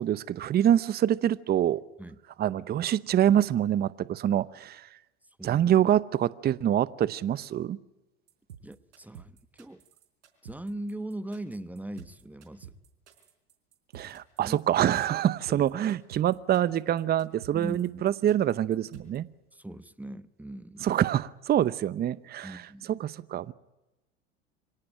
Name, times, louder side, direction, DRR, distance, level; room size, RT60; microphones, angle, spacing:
voice 1, 0.0-1.8 2.4-4.9 5.4-7.8 13.9-19.3 20.8-22.6 22.9-23.5, right 11 dB, 30° right, 0.8 m, -25 dB
sound 1, 8.3-19.2, right 9 dB, 85° right, 4.4 m, -50 dB
voice 2, 8.6-9.8 10.4-12.7 14.4-14.6 15.5-15.6 17.5-18.0 19.5-20.9 22.4-23.0, right 1 dB, 5° right, 1.0 m, -40 dB
26.0 x 17.5 x 8.9 m
hypercardioid pair, 95°, 34 cm